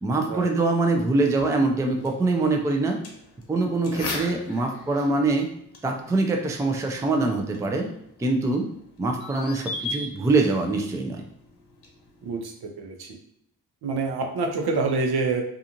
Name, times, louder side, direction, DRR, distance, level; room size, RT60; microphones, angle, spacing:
voice 1, 0.0-3.0 3.5-5.5 5.8-7.9 8.2-8.7 9.0-11.2, right 3 dB, 10° right, 3 dB, 0.4 m, -24 dB
sound 1, 1.4-12.4, left 2 dB, 65° left, 0.8 m, -40 dB
voice 2, 12.2-13.1 13.8-15.4, right 3 dB, 65° right, 2 dB, 0.7 m, -27 dB
2.5 x 2.4 x 2.8 m, 0.73 s
cardioid pair, 55°, 41 cm